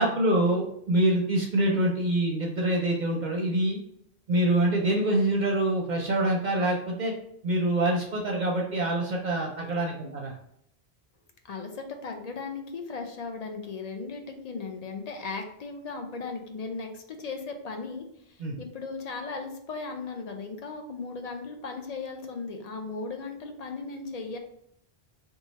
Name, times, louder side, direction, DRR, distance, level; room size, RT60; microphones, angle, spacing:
voice 1, 0.0-3.8 4.3-7.1 7.4-10.3 18.4-18.6, right 1 dB, 55° right, -1 dB, 0.6 m, -25 dB
voice 2, 11.5-24.4, left 4 dB, 50° left, 4 dB, 0.5 m, -37 dB
3.0 x 2.3 x 4.1 m, 0.72 s
omnidirectional pair, 1.1 m